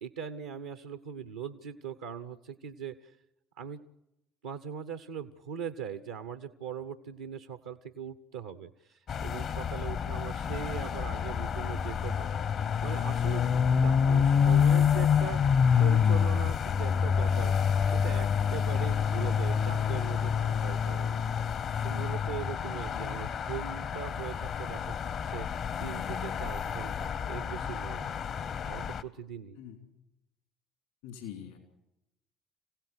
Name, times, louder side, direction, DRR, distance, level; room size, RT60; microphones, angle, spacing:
voice 1, 0.0-3.2 3.6-3.8 4.4-13.5 13.8-15.4 15.8-21.3 21.8-25.0 25.2-28.1 28.7-29.6, right 8 dB, 85° right, 10 dB, 0.7 m, -41 dB
sound 1, 9.1-29.0, left 7 dB, 55° left, 1.0 m, -28 dB
voice 2, 22.7-23.3 29.6-29.8 31.0-31.6, left 8 dB, 80° left, 4 dB, 3.5 m, -44 dB
27.0 x 16.5 x 8.0 m, 0.91 s
hypercardioid pair, 55°, 0 cm